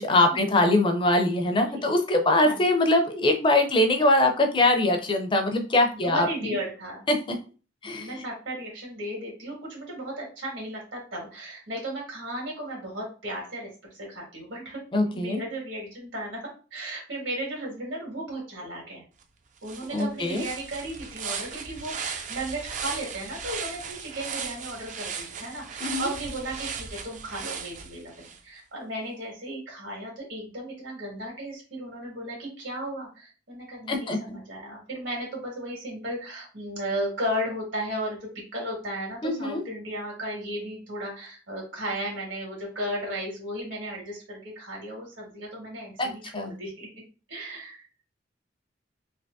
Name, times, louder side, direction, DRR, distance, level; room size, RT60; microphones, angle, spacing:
voice 1, 0.0-6.6 7.3-7.4 7.8-8.1 14.9-15.4 19.9-20.4 25.8-26.1 33.9-34.2 39.2-39.6 46.0-46.5, left 2 dB, 25° left, 5 dB, 0.5 m, -23 dB
voice 2, 5.9-7.1 7.8-16.4 16.7-19.0 19.6-46.9 47.3-47.9, right 1 dB, 80° right, -2 dB, 1.8 m, -35 dB
sound 1, 19.2-19.3 19.6-28.4, right 6 dB, 40° right, 0.3 m, -37 dB
3.3 x 2.9 x 2.6 m, 0.36 s
head